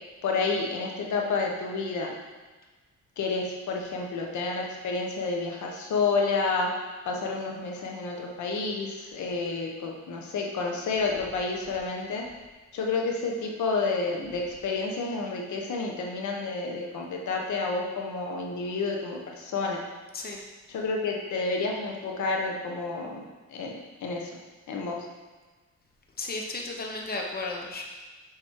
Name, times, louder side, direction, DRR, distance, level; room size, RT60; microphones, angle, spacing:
voice 1, 0.2-2.1 3.2-6.7 7.0-12.2 12.7-19.8 20.7-23.2 23.5-24.3 24.7-25.1, left 3 dB, 70° left, 0 dB, 1.4 m, -30 dB
voice 2, 26.2-27.8, left 2 dB, 30° left, 0 dB, 1.1 m, -34 dB
6.8 x 5.3 x 4.8 m, 1.3 s
cardioid pair, 90°, 30 cm